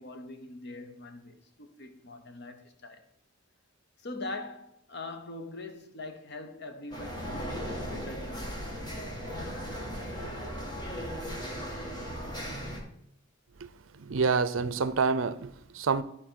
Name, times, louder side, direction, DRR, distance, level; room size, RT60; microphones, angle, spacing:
voice 1, 0.0-3.1 4.0-8.6, left 2 dB, 60° left, 1.0 m, -42 dB
sound 1, 6.9-12.8, equal, 20° left, 1.5 m, -37 dB
voice 2, 13.9-16.0, right 5 dB, 75° right, 0.5 m, -28 dB
11.5 x 4.2 x 4.4 m
head